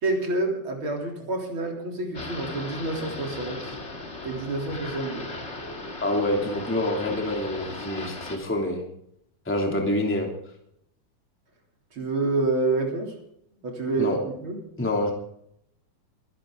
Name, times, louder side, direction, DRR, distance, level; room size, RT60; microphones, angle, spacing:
voice 1, 0.0-3.8 4.2-5.3 11.9-13.2 13.6-14.1 14.4-14.6, right 2 dB, 40° right, 1 dB, 4.2 m, -28 dB
sound 1, 2.1-8.4, left 2 dB, 25° left, 2.1 m, -37 dB
voice 2, 6.0-8.9 9.4-10.3 14.0-14.2 14.8-15.1, left 1 dB, 5° left, 1 dB, 2.5 m, -26 dB
24.0 x 11.5 x 3.9 m, 0.72 s
omnidirectional pair, 3.7 m